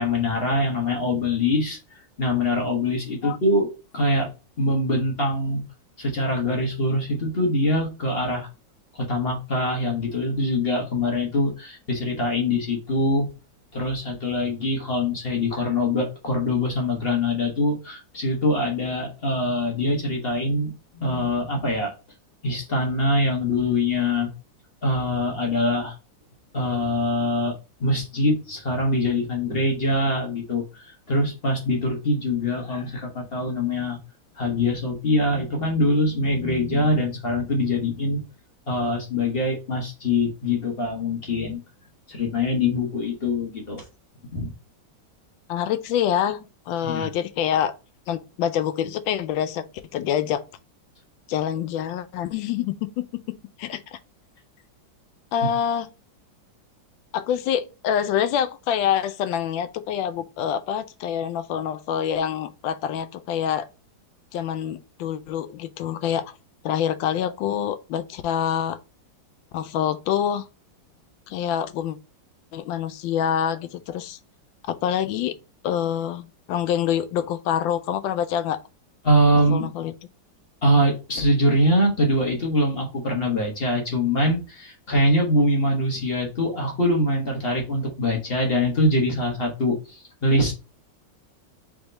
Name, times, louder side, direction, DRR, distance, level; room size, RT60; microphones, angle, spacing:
voice 1, 0.0-4.3 4.6-5.6 6.0-8.5 8.9-13.3 13.7-21.9 22.4-24.3 24.8-26.0 26.5-27.5 27.8-34.0 34.4-38.2 38.7-41.6 42.1-43.8 44.3-44.5 46.8-47.1 79.0-79.7 80.6-90.5, left 1 dB, 35° left, 1.1 m, -23 dB
voice 2, 45.5-47.7 48.1-50.4 51.3-53.1 53.6-54.0 55.3-55.9 57.1-63.7 64.3-66.3 66.6-68.8 69.5-70.5 71.3-72.0 72.5-74.2 74.7-75.4 75.6-78.6 79.5-79.9, left 9 dB, 90° left, 1.3 m, -26 dB
3.6 x 3.6 x 4.0 m
omnidirectional pair, 2.0 m